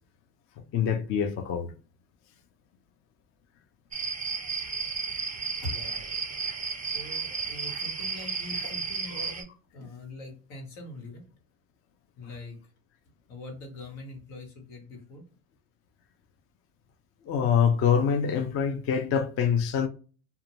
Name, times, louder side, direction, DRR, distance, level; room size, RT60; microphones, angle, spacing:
voice 1, 0.7-1.7 17.3-19.9, left 7 dB, 35° left, 0.4 m, -25 dB
sound 1, 3.9-9.4, right 5 dB, 20° right, 0.5 m, -33 dB
voice 2, 5.6-6.0 6.9-11.3 12.2-12.6 13.3-15.2, left 1 dB, 80° left, 1.3 m, -42 dB
2.4 x 2.2 x 2.8 m
hypercardioid pair, 80°, 44 cm